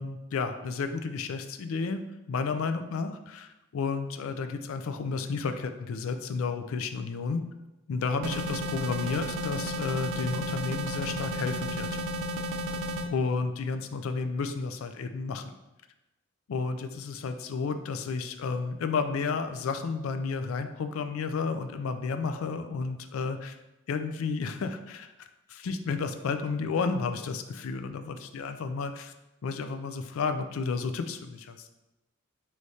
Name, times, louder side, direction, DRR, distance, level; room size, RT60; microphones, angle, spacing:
voice 1, 0.0-2.0 2.3-7.4 7.9-12.0 13.1-15.5 16.5-23.5 23.9-29.1 29.4-31.7, left 4 dB, 70° left, 8 dB, 0.4 m, -32 dB
sound 1, 8.2-13.1, equal, 90° right, 0.4 m, -33 dB
4.8 x 3.2 x 2.7 m, 1.0 s
head